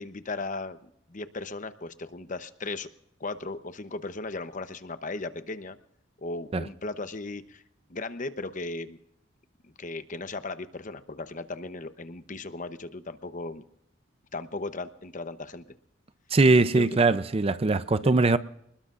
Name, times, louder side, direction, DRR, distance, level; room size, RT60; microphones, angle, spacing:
voice 1, 0.0-2.9 3.2-5.8 6.2-7.6 7.9-9.0 9.6-13.6 14.3-15.7 16.7-17.0 18.0-18.1, left 3 dB, 45° left, 0.9 m, -36 dB
voice 2, 16.3-18.4, right 3 dB, 30° right, 0.5 m, -21 dB
27.5 x 20.5 x 2.5 m
head